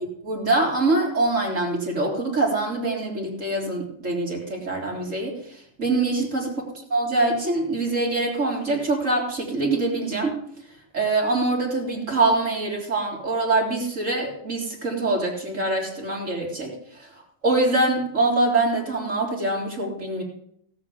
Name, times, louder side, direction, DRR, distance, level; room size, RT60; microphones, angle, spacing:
voice 1, 0.2-5.3 5.8-6.5 6.9-10.3 10.9-16.7 17.4-20.2, right 2 dB, 20° right, -2 dB, 3.1 m, -24 dB
17.5 x 7.3 x 7.8 m, 0.70 s
omnidirectional pair, 5.2 m